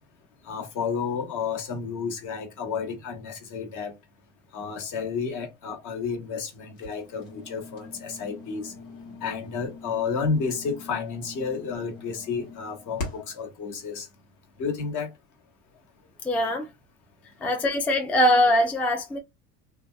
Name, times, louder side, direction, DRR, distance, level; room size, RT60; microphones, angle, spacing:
voice 1, 0.4-3.9 4.5-8.7 9.2-14.1 14.6-15.1, left 5 dB, 55° left, 1.1 m, -31 dB
sound 1, 6.8-13.4, left 3 dB, 90° left, 1.1 m, -42 dB
voice 2, 16.2-16.7 17.4-19.2, left 1 dB, 5° left, 0.4 m, -22 dB
2.7 x 2.2 x 2.2 m
hypercardioid pair, 90°, 36 cm